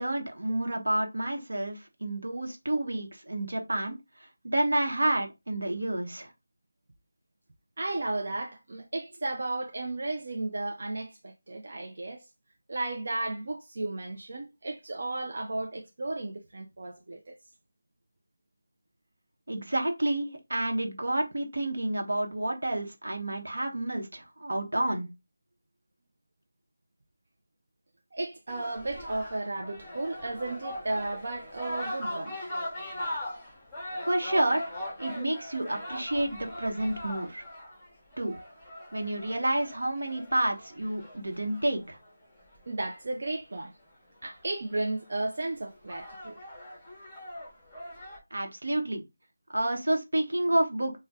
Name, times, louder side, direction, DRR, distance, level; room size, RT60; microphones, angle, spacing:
voice 1, 0.0-4.0 4.4-6.3 19.5-25.1 34.1-34.7 35.0-37.4 38.2-38.3 38.9-42.0 48.3-49.0 49.5-51.0, right 1 dB, 80° right, 0.9 m, -29 dB
voice 2, 7.8-12.2 12.7-17.3 28.1-32.4 42.7-43.8 44.2-46.4, right 2 dB, 55° right, 0.4 m, -34 dB
sound 1, 28.5-42.7 44.2-44.3 44.7-45.2 45.7-48.2, left 1 dB, 5° left, 0.9 m, -40 dB
2.6 x 2.1 x 3.4 m
figure-of-eight pair, 170°, 0 cm